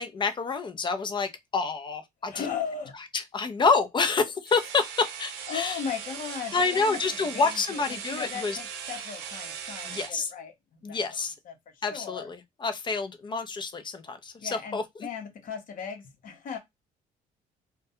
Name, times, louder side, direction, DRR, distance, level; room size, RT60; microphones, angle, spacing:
voice 1, 0.0-2.5 3.1-5.8 6.5-8.6 9.9-10.3 10.8-11.3 11.8-15.1, left 4 dB, 30° left, 0.5 m, -28 dB
voice 2, 2.3-3.0 5.5-7.0 7.3-10.5 10.9-11.0 11.5-11.6 11.9-12.3 14.4-16.6, left 7 dB, 55° left, 0.8 m, -37 dB
sound 1, 4.5-10.2, right 7 dB, 85° right, 0.6 m, -39 dB
2.2 x 2.2 x 2.7 m
cardioid pair, 110°, 17 cm